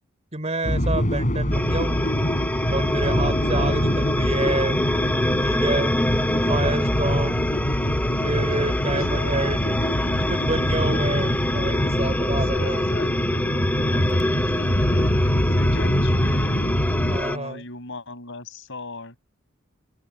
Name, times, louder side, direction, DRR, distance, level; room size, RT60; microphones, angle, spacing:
voice 1, 0.3-2.0 2.7-4.8 5.4-5.9 6.5-7.5 8.2-9.8 10.3-12.9 17.1-17.6, right 2 dB, 30° right, 3.8 m, -28 dB
sound 1, 0.6-17.2, equal, 35° left, 7.6 m, -24 dB
sound 2, 1.5-17.4, left 1 dB, 10° left, 0.5 m, -26 dB
voice 2, 2.5-2.8 5.8-5.9 8.5-9.6 10.8-11.7 12.3-16.7 17.2-19.2, left 3 dB, 60° left, 7.7 m, -39 dB
open air
head